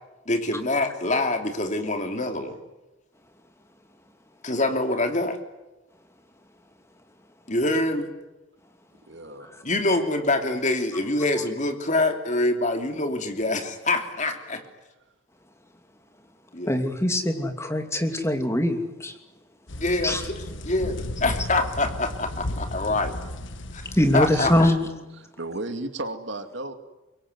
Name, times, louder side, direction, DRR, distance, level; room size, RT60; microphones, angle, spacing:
voice 1, 0.3-2.6 4.4-5.4 7.5-8.1 9.6-14.6 16.5-16.8 19.8-20.3 20.6-23.1 23.7-23.8 24.1-24.7, left 2 dB, 35° left, 6 dB, 3.0 m, -25 dB
voice 2, 9.1-9.7 24.2-24.9 25.2-26.7, right 2 dB, 60° right, 8 dB, 2.4 m, -35 dB
voice 3, 16.7-19.1 20.0-20.2 23.9-24.8, left 1 dB, 15° left, 6 dB, 2.8 m, -23 dB
sound 1, 19.7-24.7, left 1 dB, 65° left, 1.5 m, -34 dB
25.0 x 23.5 x 9.7 m, 1.0 s
head